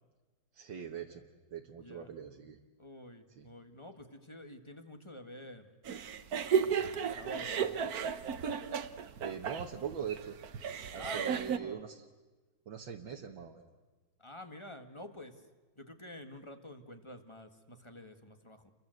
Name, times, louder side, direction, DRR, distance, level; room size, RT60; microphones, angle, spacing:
voice 1, 0.5-1.2 1.5-2.6 3.3-3.5 9.2-10.4 10.9-12.1 12.7-13.6, right 7 dB, 80° right, 1 dB, 2.1 m, -42 dB
voice 2, 2.8-5.7 6.5-7.9 10.9-11.9 14.2-15.3 15.8-18.7, left 1 dB, 15° left, 7 dB, 1.8 m, -49 dB
sound 1, 5.8-11.6, right 7 dB, 55° right, 1.4 m, -34 dB
29.5 x 23.0 x 7.9 m, 1.3 s
omnidirectional pair, 2.1 m